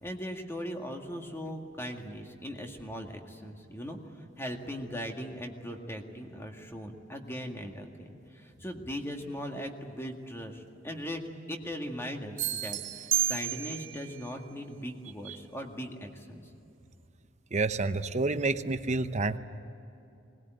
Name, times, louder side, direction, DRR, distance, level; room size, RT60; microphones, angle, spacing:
voice 1, 0.0-8.1 8.3-11.2 11.5-16.5, equal, 15° left, 3 dB, 2.0 m, -39 dB
sound 1, 12.4-14.0, right 10 dB, 80° right, 1.2 m, -31 dB
voice 2, 17.5-19.4, right 3 dB, 40° right, 10 dB, 0.9 m, -29 dB
21.0 x 19.5 x 9.2 m, 2.7 s
head